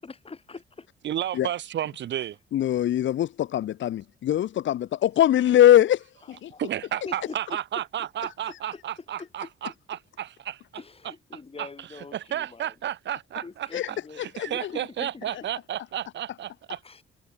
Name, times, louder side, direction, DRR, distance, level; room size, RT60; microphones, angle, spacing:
voice 1, 0.0-0.9 6.5-6.6 7.0-7.4 7.7-7.8 8.2-8.8 9.2-9.7 10.8-12.8 13.4-15.3 16.8-17.0, left 4 dB, 30° left, 5.9 m, -43 dB
voice 2, 1.0-2.4 6.6-10.6 11.6-13.7 14.4-16.8, right 11 dB, 65° right, 1.2 m, -32 dB
voice 3, 2.5-6.5 13.7-13.9 14.3-14.7 15.3-15.4, left 12 dB, 70° left, 1.9 m, -22 dB
cardioid pair, 90°, 20 cm